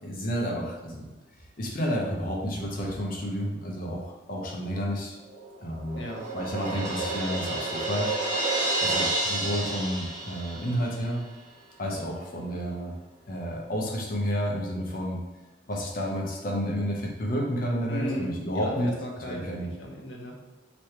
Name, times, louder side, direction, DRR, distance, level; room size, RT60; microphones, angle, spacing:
voice 1, 0.0-1.1 1.6-5.2 5.6-6.0 6.3-8.2 8.8-11.2 11.8-13.0 13.3-15.2 15.7-18.9 19.3-19.7, equal, 50° left, -1 dB, 0.8 m, -30 dB
Crash cymbal, 5.3-11.0, right 2 dB, 40° right, 0.9 m, -30 dB
voice 2, 17.9-20.3, equal, 90° left, -1 dB, 0.9 m, -36 dB
3.3 x 3.0 x 4.4 m, 1.1 s
head